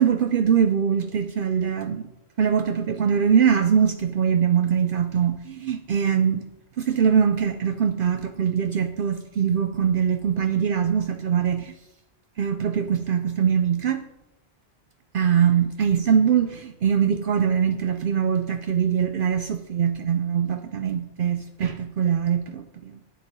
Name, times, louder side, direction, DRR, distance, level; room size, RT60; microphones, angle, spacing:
voice 1, 0.0-2.0 2.4-6.5 6.8-11.7 12.4-14.0 15.1-22.9, right 7 dB, 60° right, 0.7 m, -22 dB
9.3 x 7.6 x 5.3 m
omnidirectional pair, 1.1 m